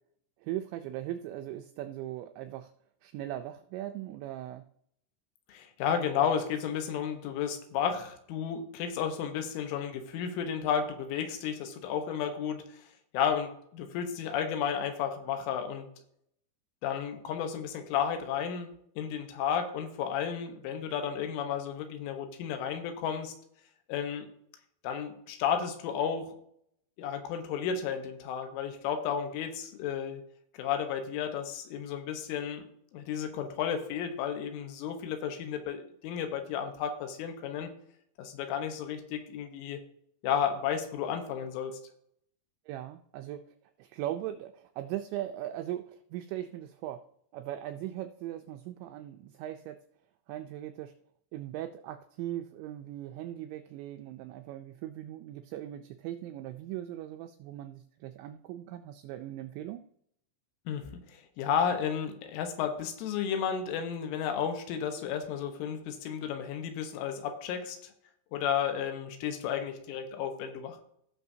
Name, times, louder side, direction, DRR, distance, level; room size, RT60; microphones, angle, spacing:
voice 1, 0.4-2.7 3.0-4.7 42.7-43.4 43.8-47.0 47.3-49.8 50.3-50.9 51.3-59.8, right 13 dB, 85° right, 8 dB, 2.6 m, -39 dB
voice 2, 5.5-12.8 13.1-15.9 16.8-18.7 19.0-23.4 23.9-24.3 24.8-26.4 27.0-30.2 30.5-32.6 32.9-37.7 38.2-39.8 40.2-41.8 60.7-67.9 68.3-70.8, left 8 dB, 80° left, 6 dB, 3.5 m, -32 dB
17.5 x 6.2 x 2.7 m, 0.69 s
omnidirectional pair, 5.7 m